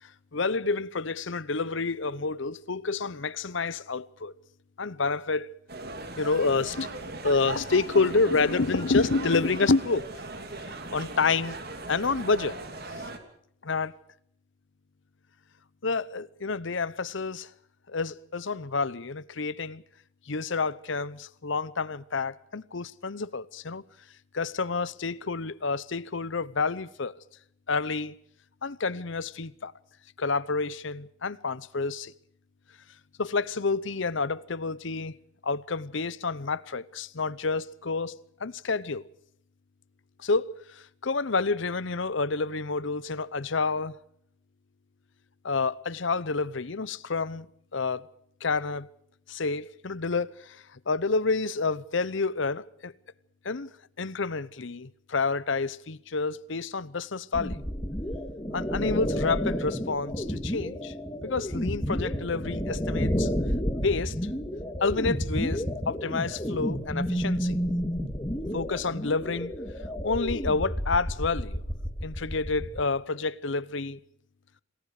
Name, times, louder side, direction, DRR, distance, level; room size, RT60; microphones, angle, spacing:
voice 1, 0.3-4.3 4.8-5.5 6.2-10.1 10.6-11.6 11.9-12.6 13.6-13.9 15.8-17.5 17.9-19.8 20.3-23.8 24.3-27.1 27.7-28.2 28.6-29.7 30.2-32.1 33.2-35.2 35.4-39.1 40.2-44.0 45.4-47.5 47.7-48.1 48.4-48.9 49.3-52.9 53.4-53.7 54.0-57.6 58.5-60.9 61.2-63.3 63.7-64.1 64.8-67.6 68.5-69.5 70.0-71.6 72.0-74.0, left 4 dB, 60° left, 0.8 m, -29 dB
sound 1, 5.7-13.2, right 2 dB, 50° right, 2.9 m, -38 dB
sound 2, 57.3-72.8, equal, 20° left, 2.6 m, -31 dB
29.0 x 20.5 x 4.9 m
head